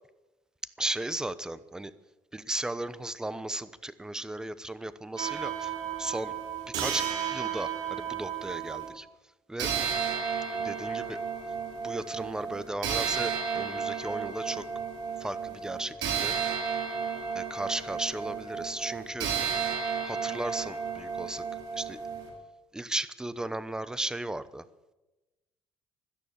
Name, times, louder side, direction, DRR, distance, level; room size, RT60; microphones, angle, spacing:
voice 1, 0.8-1.9 2.3-6.3 6.7-9.1 9.5-9.7 10.5-11.2 11.8-14.7 15.2-16.4 17.3-19.3 20.0-21.4 21.8-22.0 22.7-24.6, right 1 dB, 10° right, 15 dB, 0.9 m, -35 dB
sound 1, 5.2-8.9 9.6-22.3, right 7 dB, 75° right, 4.3 m, -33 dB
16.5 x 12.0 x 7.2 m, 1.1 s
cardioid pair, 110°, 8 cm